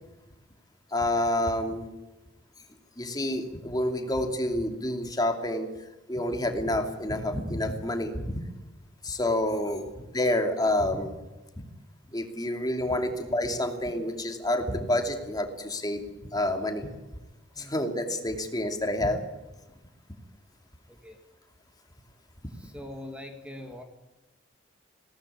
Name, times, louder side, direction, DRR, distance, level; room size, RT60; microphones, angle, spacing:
voice 1, 0.9-1.9 3.0-5.7 6.1-8.3 9.0-9.9 10.1-11.1 11.6-11.7 12.1-16.0 16.3-16.9 17.6-19.3, left 1 dB, 20° left, 5 dB, 2.7 m, -28 dB
voice 2, 20.9-21.2 22.5-23.8, left 1 dB, 5° right, 4 dB, 2.0 m, -43 dB
20.0 x 18.0 x 8.6 m, 1.1 s
head